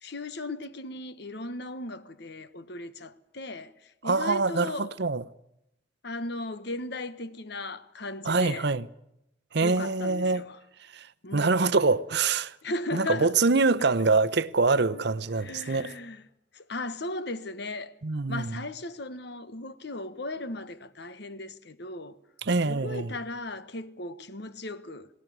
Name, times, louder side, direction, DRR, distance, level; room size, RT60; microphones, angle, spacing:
voice 1, 0.0-4.9 6.0-8.7 9.6-10.6 11.2-12.0 12.6-13.3 14.9-15.1 15.4-16.2 16.5-18.0 18.3-22.2 22.6-25.1, left 2 dB, 60° left, 1.3 m, -37 dB
voice 2, 4.0-5.2 8.2-8.9 9.5-10.4 10.9-11.1 11.3-12.5 12.9-15.9 18.0-18.6 22.4-23.1, right 3 dB, 60° right, 0.8 m, -25 dB
20.0 x 18.5 x 9.4 m
head